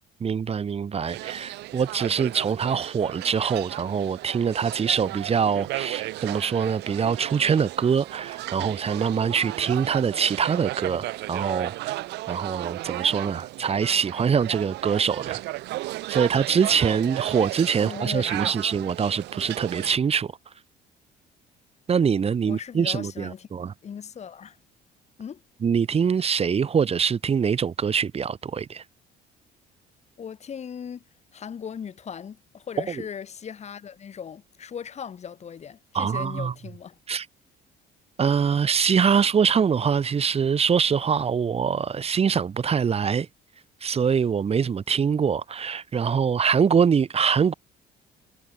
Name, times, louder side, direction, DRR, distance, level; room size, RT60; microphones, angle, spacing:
voice 1, 0.2-12.0 12.3-15.4 16.1-20.3 21.9-23.7 25.6-28.8 35.9-36.5 37.1-37.3 38.2-43.3 43.8-47.5, right 6 dB, 35° right, 2.5 m, -24 dB
sound 1, 1.0-20.0, right 18 dB, 85° right, 6.5 m, -34 dB
voice 2, 17.8-18.5 22.4-23.5 23.8-24.6 25.2-25.4 30.2-31.0 31.3-37.0, left 7 dB, 40° left, 3.3 m, -38 dB
cardioid pair, 110°, 17 cm